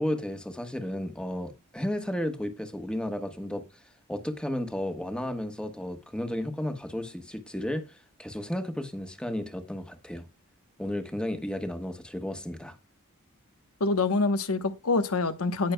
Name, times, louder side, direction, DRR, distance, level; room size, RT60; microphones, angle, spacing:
voice 1, 0.0-3.6 4.1-10.3 10.8-12.8, left 1 dB, 5° left, 1.1 m, -33 dB
voice 2, 13.8-15.7, left 3 dB, 85° left, 1.0 m, -26 dB
18.0 x 6.4 x 2.2 m
head